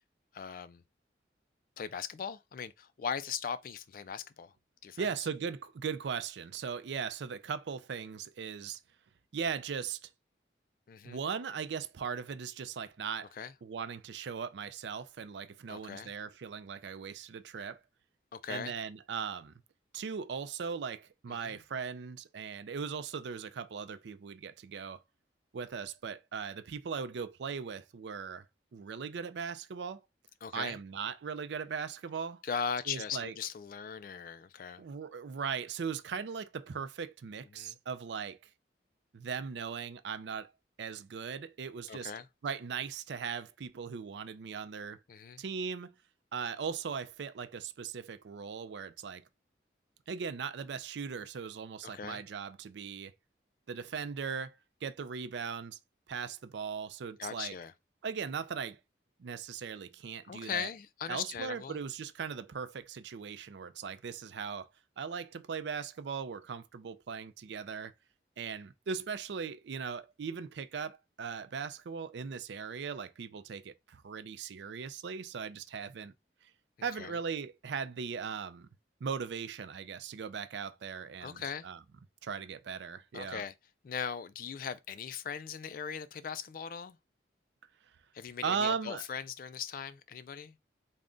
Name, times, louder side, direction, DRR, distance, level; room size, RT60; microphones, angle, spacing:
voice 1, 0.3-0.8 1.8-4.5 4.8-5.1 10.9-11.2 13.3-13.5 15.7-16.1 18.3-18.7 21.3-21.6 30.4-30.8 32.4-34.8 37.5-37.7 41.9-42.3 45.1-45.4 51.8-52.2 57.2-57.7 60.3-61.8 77.0-77.2 81.2-81.7 83.1-83.5 83.8-87.0 88.1-90.6, left 7 dB, 50° left, 0.3 m, -39 dB
voice 2, 5.0-8.8 9.3-10.1 11.0-13.3 13.6-17.8 18.5-19.5 19.9-25.0 25.5-28.4 28.7-30.0 30.5-32.4 32.9-33.3 34.8-38.4 39.1-40.5 40.8-42.1 42.4-45.0 45.4-45.9 46.3-49.2 50.1-53.1 53.7-55.8 56.1-57.5 58.0-58.8 59.2-60.7 61.1-64.7 65.0-67.9 68.4-76.1 76.4-76.5 76.8-78.7 79.0-81.8 82.2-83.4 88.4-89.0, right 6 dB, 75° right, 0.4 m, -38 dB
3.6 x 2.1 x 3.7 m
head